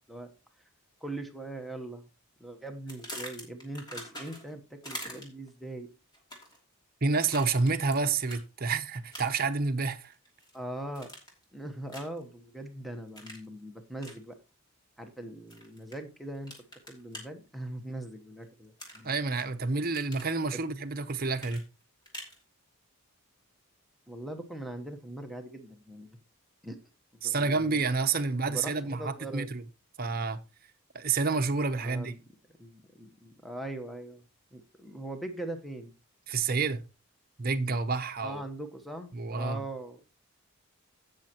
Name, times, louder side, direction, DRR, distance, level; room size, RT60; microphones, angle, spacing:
voice 1, 1.0-2.0 2.4-5.9 10.5-11.1 11.5-14.4 15.0-16.5 16.9-19.1 20.5-20.6 24.1-26.1 26.6-26.8 27.1-27.8 28.5-29.5 31.8-32.2 32.6-34.2 34.5-35.9 38.2-40.0, right 1 dB, ahead, 1.0 m, -41 dB
sound 1, 2.9-4.5 4.8-5.5 6.1-6.6 7.2-8.0 8.3-8.4 9.1-9.5 9.9-10.6 10.9-11.4 11.9-12.2 13.2-13.5 14.0-14.2 15.5-16.0 16.5-17.2 18.8-19.4 19.8-20.3 21.4-22.4, equal, 20° left, 2.8 m, -43 dB
voice 2, 7.0-10.1 19.0-21.6 27.2-29.6 30.0-30.4 30.9-32.1 36.3-36.8 37.4-38.4 39.1-39.6, right 4 dB, 40° right, 0.8 m, -29 dB
16.5 x 6.4 x 3.0 m
head